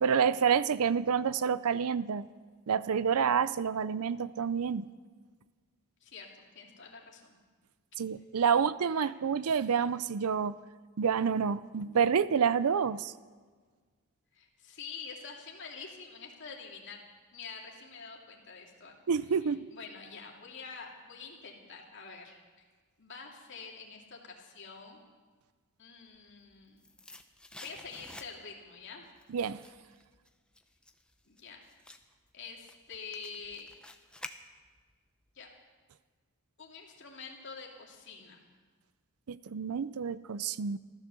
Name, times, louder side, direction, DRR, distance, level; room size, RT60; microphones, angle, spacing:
voice 1, 0.0-2.3 2.7-4.9 8.0-10.6 11.0-13.1 19.1-19.7 29.3-29.6 39.3-40.8, right 6 dB, 80° right, 17 dB, 0.5 m, -28 dB
voice 2, 6.0-7.4 8.9-9.1 14.3-17.0 17.3-18.9 19.4-22.7 23.0-25.0 25.8-26.8 27.6-29.0 31.3-31.6 32.3-33.7 35.3-35.5 36.6-38.4, left 5 dB, 55° left, -1 dB, 2.6 m, -47 dB
sound 1, 26.3-28.7 29.0-34.9 35.2-35.3, left 2 dB, 5° left, 0.6 m, -51 dB
15.0 x 13.0 x 6.9 m, 1.5 s
head